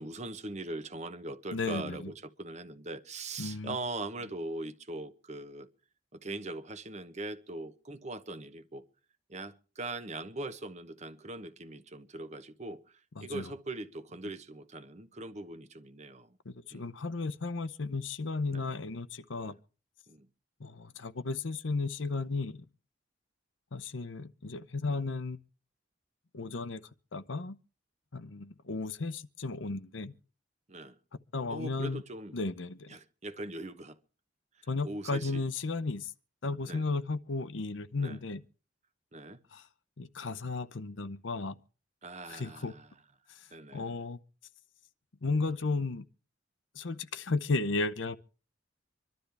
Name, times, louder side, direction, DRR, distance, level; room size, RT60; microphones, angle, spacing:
voice 1, 0.0-5.7 6.1-8.8 9.3-12.8 13.2-16.3 16.7-16.9 18.5-18.7 19.4-19.6 20.1-20.3 30.7-30.9 31.5-32.4 32.9-34.0 34.8-35.4 36.6-36.8 38.0-38.2 39.1-39.4 42.0-42.8 43.5-44.0, right 2 dB, 35° right, 0.9 m, -41 dB
voice 2, 1.5-2.1 3.4-3.8 13.2-13.5 16.4-19.5 20.6-22.6 23.7-25.4 26.3-26.8 27.1-27.6 28.1-30.1 31.3-32.0 32.3-33.0 34.7-36.1 36.4-38.4 39.5-39.7 40.0-41.6 42.3-42.7 43.3-43.4 43.7-44.2 45.2-46.0 46.7-48.2, left 3 dB, 80° left, 0.8 m, -34 dB
25.5 x 12.0 x 3.4 m
head